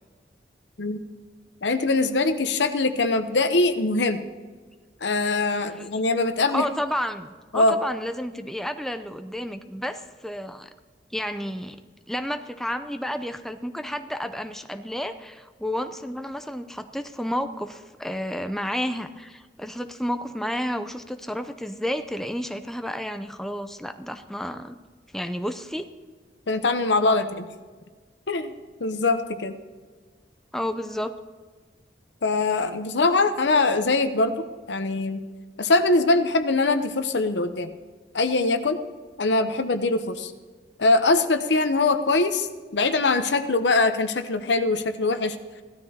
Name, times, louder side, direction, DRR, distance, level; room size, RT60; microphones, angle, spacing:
voice 1, 1.6-4.2 5.0-6.6 7.5-7.8 26.5-27.5 28.3-28.5 28.8-29.5 32.2-35.2 35.6-37.7 38.1-38.8 39.2-40.3 40.8-45.4, left 3 dB, 85° left, 9 dB, 0.9 m, -22 dB
voice 2, 6.5-10.7 11.1-11.8 12.1-24.8 25.1-25.9 27.2-27.3 30.5-31.1, equal, ahead, 7 dB, 0.5 m, -31 dB
17.0 x 12.5 x 2.9 m, 1.4 s
head